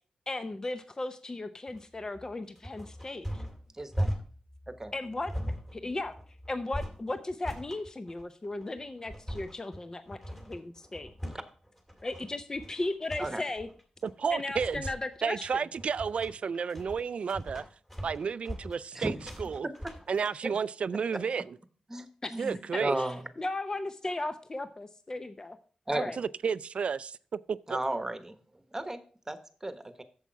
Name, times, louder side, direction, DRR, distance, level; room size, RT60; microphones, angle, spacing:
voice 1, 0.3-3.4 4.9-5.3 5.7-6.1 6.5-10.2 10.5-11.1 12.0-13.7 14.3-15.7 22.2-25.6 25.9-26.2, left 2 dB, 30° left, 0.6 m, -36 dB
sound 1, 1.7-20.3, equal, 15° left, 2.4 m, -39 dB
voice 2, 3.8-4.1 4.7-4.9 11.3-11.4 13.2-13.4 18.9-19.1 19.6-19.7 21.1-21.2 21.9-22.1 22.3-23.2 25.9-26.0 27.7-28.3 28.7-29.0 29.3-30.0, right 1 dB, 20° right, 1.1 m, -34 dB
voice 3, 14.0-14.8 15.2-17.6 18.0-19.7 20.1-21.6 22.4-23.0 26.2-27.2 27.5-27.8, right 6 dB, 65° right, 0.3 m, -32 dB
8.4 x 7.1 x 4.6 m
cardioid pair, 75°, 2 cm